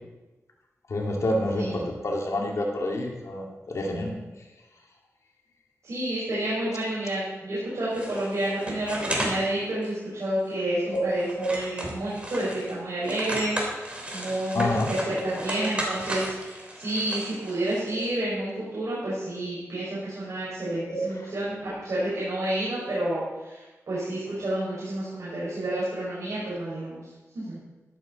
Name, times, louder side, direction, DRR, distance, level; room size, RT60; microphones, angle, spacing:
voice 1, 0.9-4.1 10.9-11.1 11.4-11.8 14.5-15.6 20.9-21.0, left 1 dB, 65° left, -1 dB, 2.4 m, -28 dB
voice 2, 5.8-27.1 27.3-27.6, right 1 dB, 70° right, -8 dB, 5.6 m, -30 dB
sound 1, 7.9-9.4 9.8-9.9 10.5-10.6 11.0-12.7 13.0-18.1, right 1 dB, 20° right, 3.4 m, -34 dB
14.5 x 12.5 x 4.1 m, 1.1 s
wide cardioid pair, 105°, 6 cm